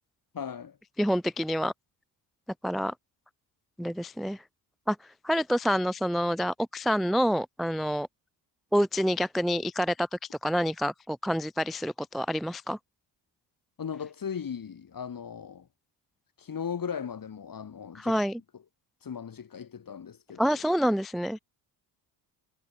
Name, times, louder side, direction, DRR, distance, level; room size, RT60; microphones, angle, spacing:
voice 1, 0.3-0.8 13.8-15.7 16.4-18.2 19.0-20.6, left 7 dB, 45° left, 5.1 m, -37 dB
voice 2, 1.0-1.7 2.6-2.9 3.8-4.4 4.9-5.0 5.2-8.1 8.7-12.8 17.9-18.4 20.4-21.4, equal, ahead, 0.3 m, -27 dB
supercardioid pair, 75°, 48 cm